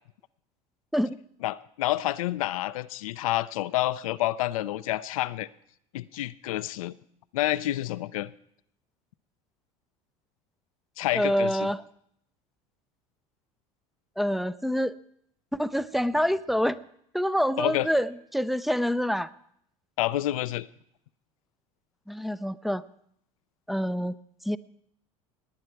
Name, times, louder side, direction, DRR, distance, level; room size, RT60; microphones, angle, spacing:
voice 1, 1.4-5.5 5.9-7.0 7.3-8.3 11.0-11.7 17.6-17.9 20.0-20.7, left 15 dB, 85° left, 16 dB, 0.5 m, -28 dB
voice 2, 11.1-11.8 14.2-15.0 15.5-16.8 17.1-19.3 22.1-22.8 23.7-24.1 24.5-24.6, equal, ahead, 17 dB, 0.5 m, -26 dB
18.5 x 9.5 x 4.6 m, 0.71 s
hypercardioid pair, 85°, 17 cm